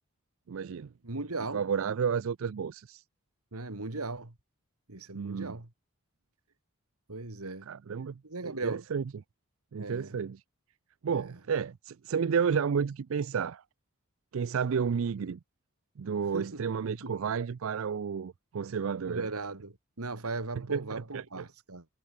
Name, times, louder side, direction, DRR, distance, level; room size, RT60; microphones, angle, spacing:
voice 1, 0.5-0.9 1.5-3.0 5.1-5.5 7.7-8.1 8.4-9.0 9.7-10.4 11.0-13.6 14.3-15.4 16.0-19.3 20.7-21.4, right 6 dB, 65° right, 0.4 m, -31 dB
voice 2, 1.0-1.6 3.5-4.3 4.9-5.7 7.1-7.7 8.2-8.8 9.8-10.2 11.1-11.4 16.3-17.1 19.0-21.9, right 3 dB, 90° right, 2.2 m, -38 dB
head